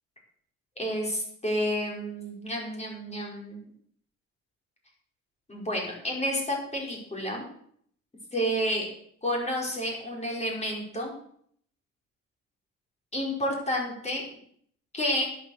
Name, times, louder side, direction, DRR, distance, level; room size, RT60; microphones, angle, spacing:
voice 1, 0.8-3.6 5.5-7.5 8.3-8.9 9.2-11.1 13.1-14.2 14.9-15.2, equal, 20° left, -1 dB, 5.0 m, -30 dB
11.0 x 7.7 x 6.6 m, 0.64 s
cardioid pair, 90°, 30 cm